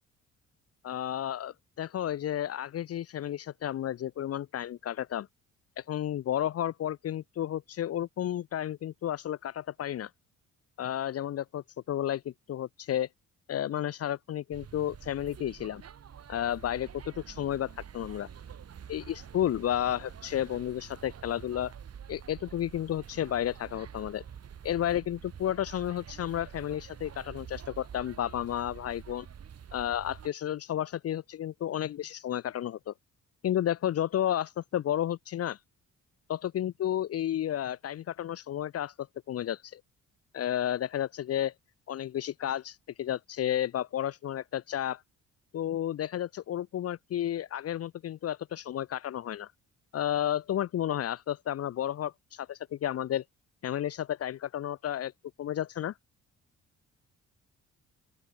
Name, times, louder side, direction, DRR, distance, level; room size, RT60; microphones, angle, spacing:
voice 1, 0.8-5.3 5.8-10.1 10.8-13.1 13.5-15.8 16.3-18.3 18.9-21.7 22.1-24.2 24.6-29.3 29.7-32.9 33.4-35.6 36.3-39.8 40.3-41.5 41.9-45.0 45.5-49.5 49.9-53.2 53.6-55.1 55.4-55.9, left 11 dB, 55° left, 0.7 m, -32 dB
sound 1, 14.5-30.3, right 8 dB, 55° right, 6.2 m, -47 dB
open air
cardioid pair, 90°, 30 cm